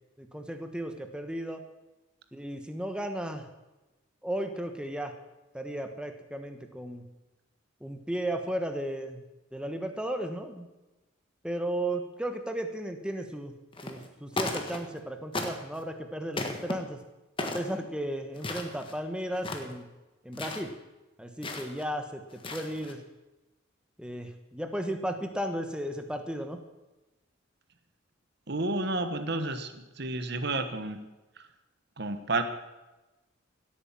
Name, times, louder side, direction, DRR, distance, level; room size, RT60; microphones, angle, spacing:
voice 1, 0.2-1.6 2.3-3.5 4.2-5.2 5.5-7.0 7.8-9.2 9.5-10.7 11.4-13.5 13.8-17.0 17.4-19.9 20.2-20.7 21.2-23.0 24.0-26.6, right 1 dB, 5° right, 6 dB, 1.2 m, -35 dB
sound 1, 13.7-14.1 14.3-15.0 15.3-15.8 16.3-16.7 17.4-17.7 18.3-19.0 19.3-19.8 20.3-20.6 21.4-21.8 22.3-22.9, left 2 dB, 25° left, 1.5 m, -35 dB
voice 2, 28.5-31.0 32.0-32.4, right 2 dB, 55° right, 9 dB, 1.2 m, -31 dB
16.5 x 8.6 x 7.5 m, 1.1 s
head